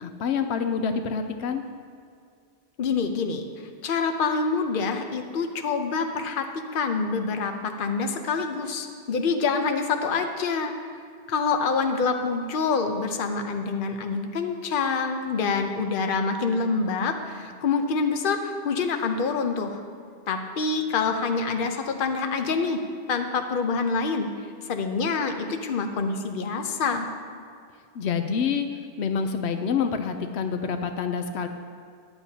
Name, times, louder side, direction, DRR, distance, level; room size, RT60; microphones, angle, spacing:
voice 1, 0.0-1.6 27.9-31.5, left 6 dB, 85° left, 7 dB, 0.9 m, -27 dB
voice 2, 2.8-3.5 3.8-6.5 6.7-10.7 11.3-19.8 20.3-22.8 23.1-24.3 24.7-27.1, left 4 dB, 55° left, 6 dB, 0.9 m, -26 dB
13.5 x 10.5 x 2.8 m, 2.2 s
omnidirectional pair, 1.1 m